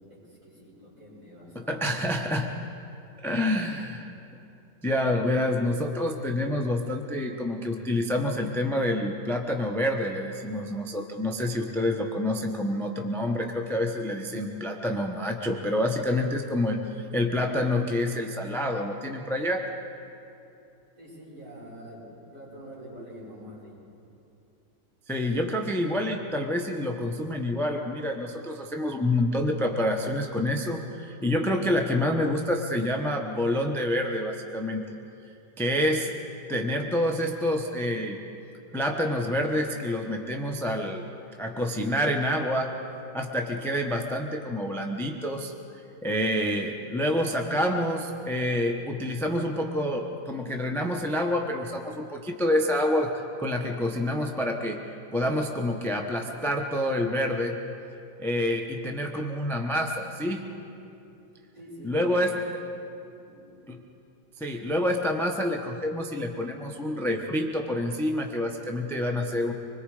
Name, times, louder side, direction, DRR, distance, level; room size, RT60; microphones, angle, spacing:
voice 1, 0.1-2.1 3.4-3.8 21.0-23.8 61.5-62.4 63.2-63.6, equal, 50° right, -8 dB, 6.9 m, -46 dB
voice 2, 1.5-2.5 3.2-4.1 4.8-19.6 25.1-34.8 35.6-36.1 36.5-38.2 38.7-41.0 41.4-42.7 43.1-45.5 46.0-54.8 55.1-57.6 58.2-60.4 61.8-62.4 63.7-63.8 64.4-69.5, left 1 dB, ahead, 3 dB, 0.6 m, -27 dB
25.5 x 21.0 x 4.9 m, 2.8 s
omnidirectional pair, 2.0 m